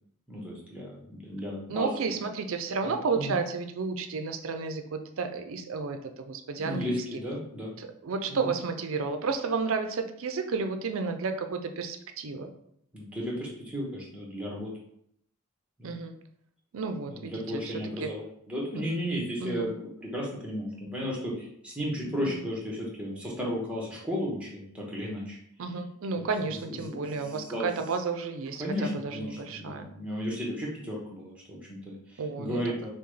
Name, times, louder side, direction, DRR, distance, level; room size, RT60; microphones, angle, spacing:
voice 1, 0.3-2.2 2.8-3.4 6.6-7.7 8.3-8.5 12.9-14.7 15.8-15.9 17.1-25.4 26.1-27.7 28.6-32.9, equal, 5° right, -3 dB, 1.1 m, -34 dB
voice 2, 1.7-7.0 7.8-12.5 15.8-16.2 16.7-18.1 19.4-19.7 22.3-22.4 25.6-29.9 32.2-32.7, right 4 dB, 65° right, 7 dB, 0.5 m, -32 dB
5.7 x 2.3 x 3.2 m, 0.71 s
head